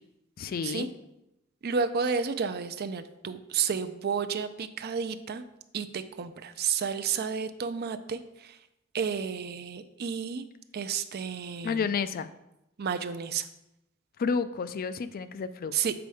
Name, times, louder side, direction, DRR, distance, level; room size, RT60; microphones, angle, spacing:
voice 1, 0.4-0.9 11.6-12.3 14.2-15.7, left 5 dB, 45° left, 12 dB, 0.3 m, -30 dB
voice 2, 1.6-5.4 5.7-8.2 8.9-10.4 10.7-11.9 12.8-13.5 15.7-15.9, right 6 dB, 50° right, 11 dB, 0.5 m, -31 dB
6.9 x 4.3 x 4.9 m, 0.87 s
head